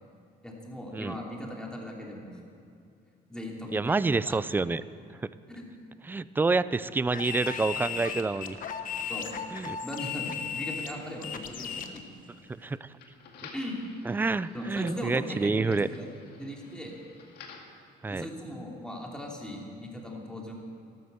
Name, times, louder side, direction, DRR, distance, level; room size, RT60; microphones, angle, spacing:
voice 1, 0.4-2.3 3.3-4.0 4.2-4.4 5.5-5.7 9.1-9.3 9.8-12.2 13.5-13.8 14.5-16.1 16.4-16.9 18.1-20.5, left 1 dB, 5° left, -1 dB, 2.9 m, -38 dB
voice 2, 3.7-4.8 5.2-5.3 6.0-8.6 9.5-9.8 12.6-12.9 14.1-15.9 18.0-18.3, right 3 dB, 10° right, 17 dB, 0.4 m, -28 dB
sound 1, 7.1-12.0, left 7 dB, 55° left, 1.2 m, -36 dB
sound 2, 11.9-17.8, left 5 dB, 70° left, 2.1 m, -52 dB
13.0 x 12.5 x 7.8 m, 2.6 s
cardioid pair, 110°, 17 cm